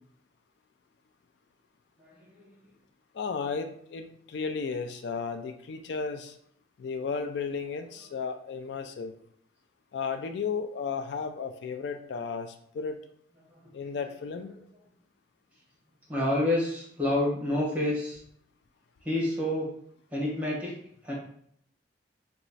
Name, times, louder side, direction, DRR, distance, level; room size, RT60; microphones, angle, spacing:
voice 1, 2.0-2.5 13.6-13.7 16.1-18.2 19.0-19.7 20.1-20.7 21.0-21.1, left 1 dB, 10° right, -4 dB, 1.1 m, -28 dB
voice 2, 3.1-6.3 6.8-9.2 9.9-13.0 13.7-14.5, left 5 dB, 75° left, 6 dB, 0.3 m, -34 dB
3.0 x 2.3 x 4.0 m, 0.65 s
head